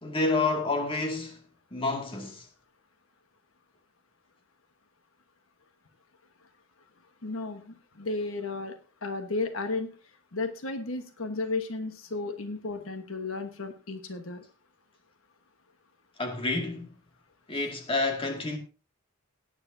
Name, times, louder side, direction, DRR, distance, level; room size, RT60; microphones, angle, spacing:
voice 1, 0.0-1.4 1.7-2.5 16.2-16.9 17.5-18.6, left 3 dB, 25° left, 2.2 m, -29 dB
voice 2, 7.2-8.8 9.0-9.9 10.3-14.4, left 3 dB, 80° left, 1.3 m, -33 dB
17.0 x 9.8 x 2.7 m
head